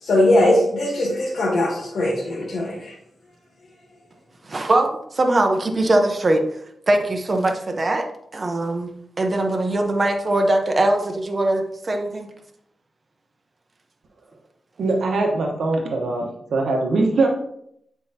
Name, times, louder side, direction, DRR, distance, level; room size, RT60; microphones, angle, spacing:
voice 1, 0.0-2.9, left 1 dB, 70° left, -5 dB, 2.0 m, -20 dB
voice 2, 4.4-6.4 6.9-8.1 8.3-8.9 9.2-12.3, right 1 dB, 30° right, 4 dB, 0.7 m, -21 dB
voice 3, 14.8-17.3, right 3 dB, 70° right, 1 dB, 1.0 m, -22 dB
8.6 x 4.6 x 2.8 m, 0.73 s
wide cardioid pair, 165°, 0 cm